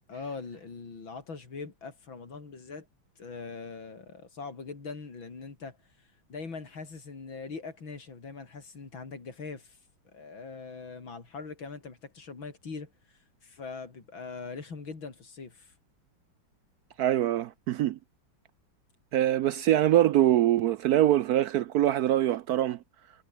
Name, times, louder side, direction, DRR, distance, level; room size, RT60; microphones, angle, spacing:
voice 1, 0.1-2.9 3.2-5.8 6.3-9.8 10.1-12.9 13.4-15.7, left 4 dB, 85° left, 4.4 m, -41 dB
voice 2, 17.0-18.0 19.1-22.8, right 13 dB, 75° right, 0.9 m, -24 dB
omnidirectional pair, 2.1 m